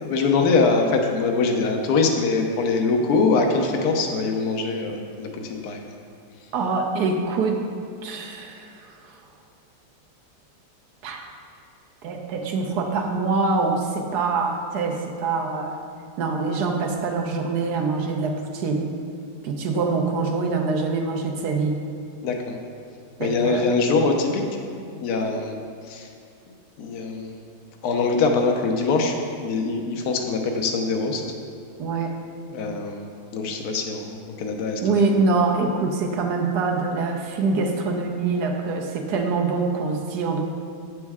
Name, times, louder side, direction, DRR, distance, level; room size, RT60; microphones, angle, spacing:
voice 1, 0.0-5.8 22.2-22.6 23.2-24.4 24.9-25.5 25.8-26.1 26.8-27.4 27.8-31.2 32.5-33.1 33.3-34.8, left 4 dB, 70° left, 2 dB, 1.2 m, -23 dB
voice 2, 6.5-7.6 8.0-9.0 11.0-11.3 12.0-15.8 16.2-18.9 19.4-21.8 23.2-23.7 31.8-32.2 34.8-40.5, right 4 dB, 75° right, 2 dB, 1.3 m, -24 dB
8.0 x 6.4 x 3.5 m, 2.4 s
omnidirectional pair, 1.8 m